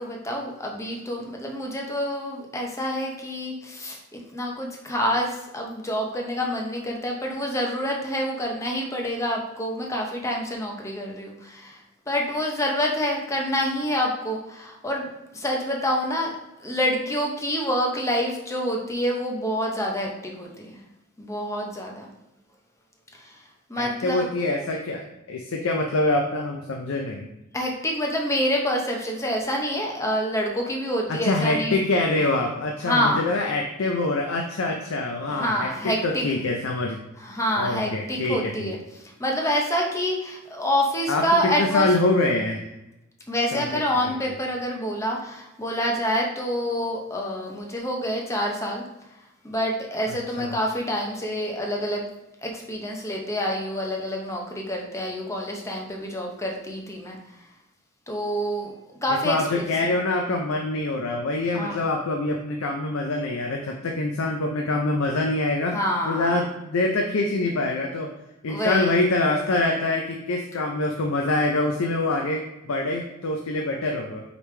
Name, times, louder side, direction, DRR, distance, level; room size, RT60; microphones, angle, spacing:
voice 1, 0.0-11.8 12.1-16.3 16.6-20.8 21.2-22.1 23.1-23.4 23.7-24.3 27.5-31.8 32.8-33.3 35.3-36.3 37.2-41.9 43.3-48.8 49.4-52.1 52.4-57.2 58.1-58.8 59.0-59.6 61.5-61.8 65.7-66.4 68.5-69.0, equal, 15° left, 0 dB, 0.7 m, -27 dB
voice 2, 23.8-27.3 31.1-37.0 37.6-38.7 41.1-42.6 43.5-43.8 50.1-50.6 59.2-65.8 66.0-68.1 68.4-74.2, left 2 dB, 85° left, 1 dB, 0.5 m, -25 dB
5.0 x 3.2 x 3.2 m, 0.94 s
head